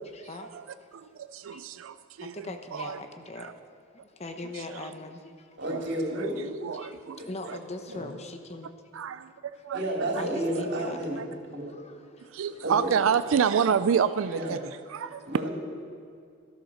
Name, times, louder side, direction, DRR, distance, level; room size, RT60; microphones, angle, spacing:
voice 1, 0.0-0.5 0.8-0.9 1.5-1.7 2.2-3.5 4.1-5.6 6.3-6.4 6.7-8.7 9.7-11.4 11.7-12.3 12.8-12.9 14.8-15.2, left 2 dB, 35° left, 7 dB, 0.8 m, -41 dB
voice 2, 0.9-2.4 2.7-3.0 3.4-3.5 5.7-5.8 6.1-7.2 7.5-7.6 8.9-9.3 9.7-9.8 11.2-11.3 12.3-14.6 14.9-15.2, right 7 dB, 85° right, 13 dB, 0.4 m, -28 dB
voice 3, 5.6-6.4 6.7-6.8 7.2-7.3 7.9-8.0 9.7-11.2 11.4-11.7 12.6-12.9 14.3-14.5 15.3-15.5, right 1 dB, 60° right, -2 dB, 3.3 m, -31 dB
13.0 x 12.0 x 6.4 m, 2.3 s
head